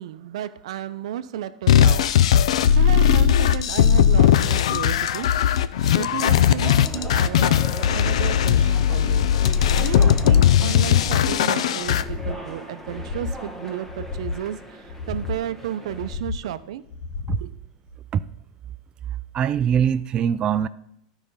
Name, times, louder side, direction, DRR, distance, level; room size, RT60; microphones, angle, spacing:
voice 1, 0.0-2.1 2.7-5.3 6.0-9.3 9.8-16.8 17.4-17.5, right 11 dB, 75° right, 13 dB, 0.6 m, -33 dB
sound 1, 1.7-12.0, left 9 dB, 80° left, 0.4 m, -18 dB
sound 2, 6.1-16.2, equal, 10° left, 1.4 m, -39 dB
sound 3, 6.8-7.4 7.8-8.4 8.8-9.4 9.8-10.4 10.8-11.4 11.8-12.4 12.8-13.4 13.8-14.4 14.8-15.4 15.9-16.4 16.9-17.5 17.9-18.0, left 4 dB, 55° left, 0.9 m, -32 dB
voice 2, 19.3-20.7, right 8 dB, 30° right, 13 dB, 0.4 m, -22 dB
12.0 x 5.0 x 5.5 m, 0.75 s
supercardioid pair, 125°, 3 cm